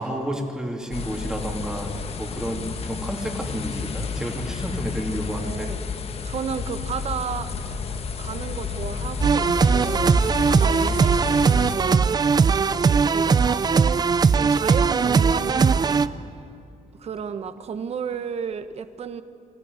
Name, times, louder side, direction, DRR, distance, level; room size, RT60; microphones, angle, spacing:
voice 1, 0.0-5.7, right 1 dB, 5° right, 1 dB, 3.0 m, -31 dB
sound 1, 0.9-11.8, left 5 dB, 50° left, 1.3 m, -31 dB
voice 2, 5.3-5.8 6.2-7.5 8.2-12.2 12.7-16.1 17.0-19.2, right 6 dB, 55° right, 10 dB, 1.3 m, -33 dB
sound 2, 9.2-16.1, right 5 dB, 30° right, 0.6 m, -19 dB
23.5 x 16.5 x 9.7 m, 2.7 s
wide cardioid pair, 155°, 13 cm